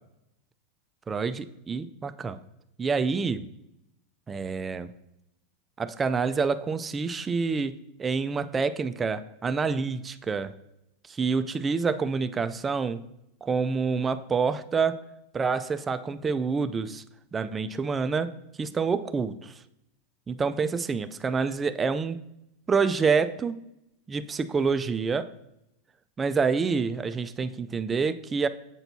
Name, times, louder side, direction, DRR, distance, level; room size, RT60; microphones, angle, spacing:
voice 1, 1.1-2.4 2.8-3.5 4.3-4.9 5.8-10.6 11.1-13.0 13.4-15.1 15.3-17.0 17.3-19.6 20.3-22.2 22.7-23.6 24.1-25.3 26.2-28.5, right 5 dB, 15° right, 12 dB, 0.3 m, -27 dB
7.9 x 6.0 x 2.7 m, 0.83 s
supercardioid pair, 145°, 0 cm